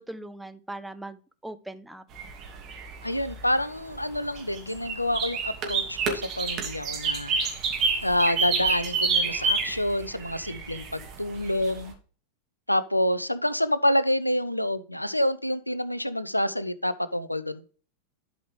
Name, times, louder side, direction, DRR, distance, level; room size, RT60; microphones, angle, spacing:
voice 1, 0.0-2.0, right 1 dB, 5° right, 0.6 m, -40 dB
sound 1, 2.1-11.9, right 4 dB, 35° right, 2.2 m, -29 dB
voice 2, 3.0-7.3 8.0-11.9 12.7-17.6, left 1 dB, 90° left, 0.5 m, -27 dB
11.5 x 5.0 x 3.3 m
figure-of-eight pair, 90°, 0 cm